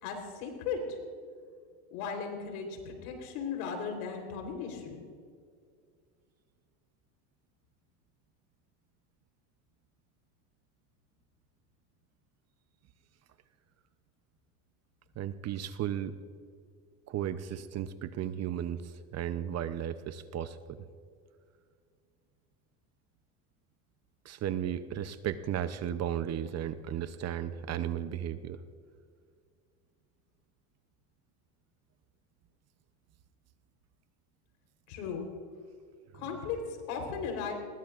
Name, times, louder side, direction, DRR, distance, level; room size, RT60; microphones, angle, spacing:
voice 1, 0.0-1.0 1.9-5.0 34.9-35.3 36.1-37.5, left 5 dB, 80° left, 3 dB, 3.8 m, -36 dB
voice 2, 15.2-16.2 17.1-20.8 24.2-28.6 36.1-36.2, right 10 dB, 35° right, 12 dB, 0.7 m, -35 dB
22.5 x 20.5 x 2.5 m, 2.2 s
supercardioid pair, 120°, 44 cm